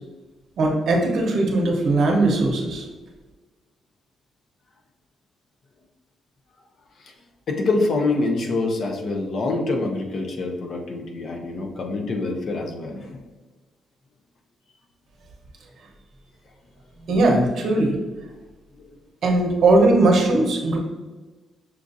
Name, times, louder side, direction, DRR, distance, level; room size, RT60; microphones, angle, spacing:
voice 1, 0.6-2.8 17.1-17.9 19.2-20.8, right 2 dB, 60° right, 1 dB, 0.8 m, -19 dB
voice 2, 7.5-13.2 18.8-18.9, left 3 dB, 45° left, 2 dB, 0.6 m, -25 dB
5.8 x 2.4 x 2.6 m, 1.2 s
cardioid pair, 170°, 0 cm